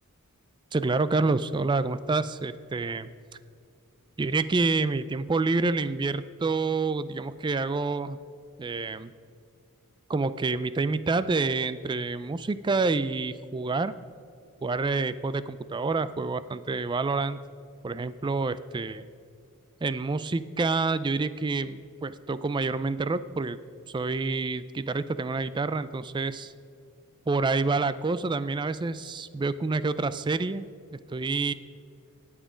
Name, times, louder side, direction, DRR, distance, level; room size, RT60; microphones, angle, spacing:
voice 1, 0.7-3.1 4.2-8.2 8.6-9.1 10.1-13.9 14.6-17.4 17.8-19.1 19.8-23.6 23.9-26.5 27.3-30.7 30.9-31.5, right 3 dB, 20° right, 15 dB, 0.3 m, -28 dB
18.5 x 7.3 x 5.0 m, 2.4 s
head